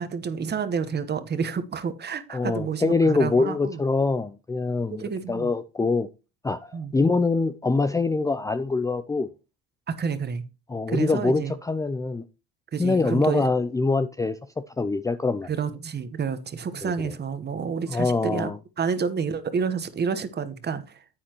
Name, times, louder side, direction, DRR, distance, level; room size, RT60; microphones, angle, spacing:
voice 1, 0.0-3.8 4.9-5.5 6.7-6.9 9.9-10.4 10.9-11.5 12.7-13.4 15.5-18.5 18.8-21.0, right 6 dB, 30° right, 1.2 m, -29 dB
voice 2, 2.3-6.1 6.4-9.3 10.7-12.2 12.8-14.4 14.8-15.5 16.8-17.1 17.9-18.6, left 3 dB, 10° left, 0.4 m, -24 dB
9.7 x 8.5 x 3.0 m
supercardioid pair, 100°, 31 cm